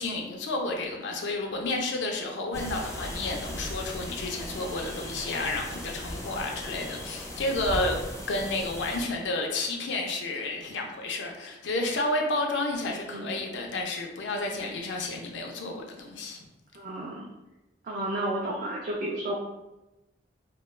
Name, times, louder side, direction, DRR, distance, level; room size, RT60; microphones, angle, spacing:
voice 1, 0.0-8.0 8.3-16.5, left 2 dB, 85° left, 2 dB, 0.5 m, -31 dB
sound 1, 2.5-9.0, left 1 dB, 15° left, 0.4 m, -37 dB
voice 2, 13.1-13.4 16.7-17.3 17.8-19.3, right 1 dB, 45° right, -4 dB, 0.4 m, -32 dB
2.2 x 2.2 x 3.1 m, 0.98 s
head